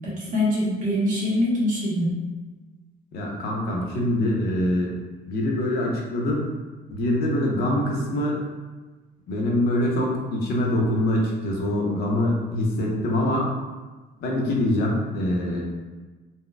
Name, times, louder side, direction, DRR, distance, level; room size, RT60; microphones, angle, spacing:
voice 1, 0.0-2.1, left 1 dB, 50° right, -6 dB, 1.1 m, -24 dB
voice 2, 3.1-4.9 5.3-6.4 6.9-8.4 9.3-13.5 14.2-15.6, left 1 dB, 65° left, -2 dB, 0.8 m, -24 dB
4.0 x 2.2 x 2.3 m, 1.3 s
cardioid pair, 110°, 17 cm